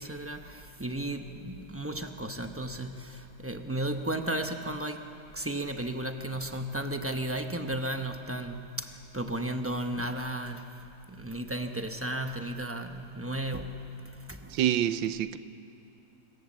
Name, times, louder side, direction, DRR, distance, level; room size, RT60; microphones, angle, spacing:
voice 1, 0.0-5.0 5.3-10.7 11.1-14.0 14.3-14.5, right 1 dB, 20° right, 0.4 m, -34 dB
voice 2, 14.5-15.4, right 11 dB, 80° right, 1.4 m, -27 dB
26.0 x 21.5 x 7.5 m
omnidirectional pair, 2.1 m